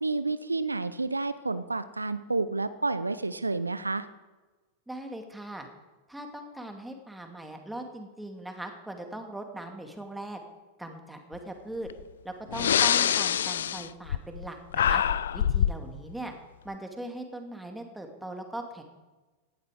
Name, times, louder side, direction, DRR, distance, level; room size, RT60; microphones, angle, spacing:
voice 1, 0.0-4.1, right 3 dB, 80° right, 14 dB, 0.6 m, -30 dB
voice 2, 4.9-5.7 6.1-10.4 10.8-11.9 12.2-15.0 15.3-16.3 16.6-18.8, right 1 dB, 5° right, 4 dB, 2.2 m, -40 dB
Breathing, 11.9-12.0 12.5-14.5 14.7-15.8, left 9 dB, 65° left, 0.4 m, -25 dB
17.5 x 12.0 x 4.9 m, 1.2 s
figure-of-eight pair, 90°, 0 cm